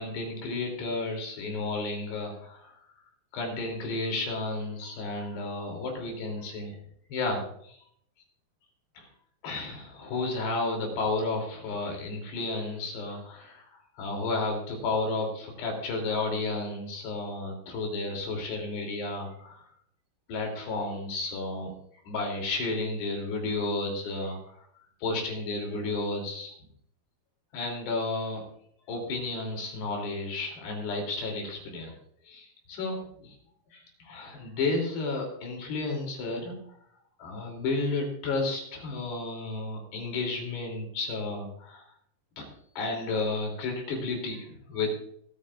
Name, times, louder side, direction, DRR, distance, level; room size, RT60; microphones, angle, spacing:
voice 1, 0.0-2.8 3.3-6.8 7.1-7.8 8.9-9.1 9.4-19.7 20.3-21.8 22.0-24.5 25.0-26.5 27.5-28.4 28.9-31.9 32.2-33.4 33.7-36.6 37.2-41.9 42.4-42.5 42.8-44.9, left 3 dB, 65° left, 2 dB, 5.0 m, -32 dB
27.5 x 9.2 x 2.5 m, 0.66 s
omnidirectional pair, 5.2 m